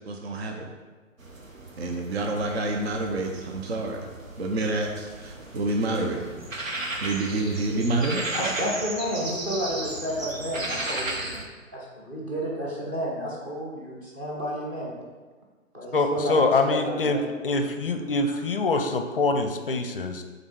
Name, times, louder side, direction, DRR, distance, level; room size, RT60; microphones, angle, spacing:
voice 1, 0.1-0.5 1.8-4.0 4.4-5.1 5.5-6.2 7.0-8.2, right 2 dB, 50° right, 2 dB, 0.8 m, -27 dB
sound 1, 1.2-11.4, right 2 dB, 75° right, 1.1 m, -35 dB
voice 2, 8.3-11.4 11.7-14.9 15.7-16.4 16.7-17.2 18.2-18.4, equal, 10° right, -4 dB, 0.6 m, -31 dB
voice 3, 15.9-17.2 17.4-20.2, left 3 dB, 45° left, 7 dB, 0.5 m, -24 dB
5.3 x 4.0 x 4.7 m, 1.3 s
figure-of-eight pair, 135°, 40 cm